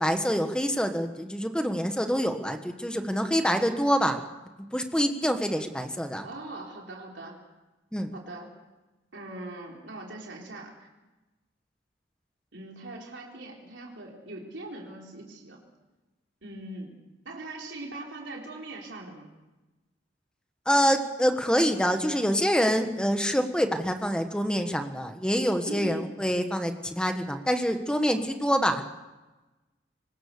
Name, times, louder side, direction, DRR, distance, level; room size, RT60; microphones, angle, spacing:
voice 1, 0.0-4.2 4.7-6.3 7.9-8.1 20.7-28.8, equal, 5° left, 6 dB, 1.4 m, -26 dB
voice 2, 6.2-7.4 8.1-8.6 9.1-10.7 12.5-15.6 16.4-19.3 25.7-26.1, right 2 dB, 80° right, -1 dB, 4.0 m, -41 dB
23.5 x 19.5 x 6.9 m, 1.1 s
head